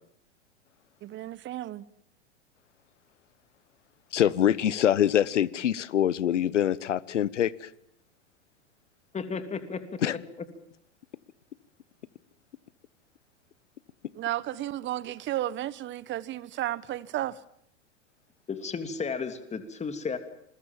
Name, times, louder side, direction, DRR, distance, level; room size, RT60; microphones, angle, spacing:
voice 1, 1.0-1.8 14.1-17.4, right 13 dB, 30° right, 1.2 m, -33 dB
voice 2, 4.1-7.7 10.0-10.2, left 10 dB, 80° left, 1.2 m, -24 dB
voice 3, 9.1-10.2 18.5-20.2, left 5 dB, 20° left, 3.1 m, -34 dB
28.0 x 22.0 x 7.5 m
hypercardioid pair, 100°, 36 cm